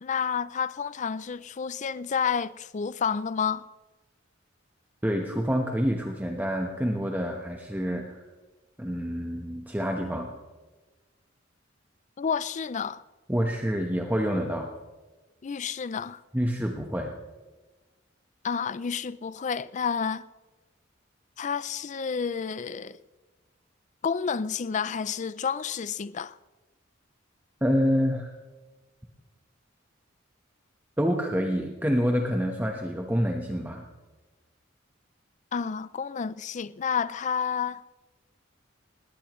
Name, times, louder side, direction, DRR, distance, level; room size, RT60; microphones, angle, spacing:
voice 1, 0.0-3.7 12.2-13.0 15.4-16.2 18.4-20.2 21.4-23.0 24.0-26.4 35.5-37.8, left 6 dB, 40° left, 0.4 m, -30 dB
voice 2, 5.0-8.2 8.8-10.3 13.3-14.7 16.3-17.1 27.6-28.3 31.0-33.9, equal, 10° right, 1.1 m, -27 dB
19.0 x 19.0 x 3.1 m
head